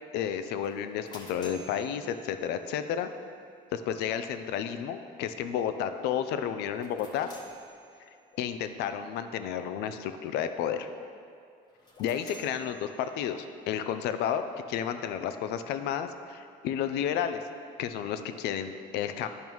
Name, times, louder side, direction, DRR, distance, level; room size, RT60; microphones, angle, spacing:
voice 1, 0.1-3.1 3.7-7.3 8.4-10.9 12.0-17.4 17.8-19.3, left 9 dB, 90° left, 9 dB, 0.4 m, -32 dB
sound 1, 0.6-2.9 6.6-8.3 11.7-13.5, equal, 25° left, 1.0 m, -52 dB
sound 2, 5.0-5.1 5.7-5.8 6.6-6.7 7.4-7.5 8.3-8.4 9.1-9.2 10.0-10.1 11.0-11.1 12.0-12.1, left 6 dB, 45° left, 0.7 m, -55 dB
10.5 x 5.3 x 3.1 m, 2.4 s
cardioid pair, 145°, 17 cm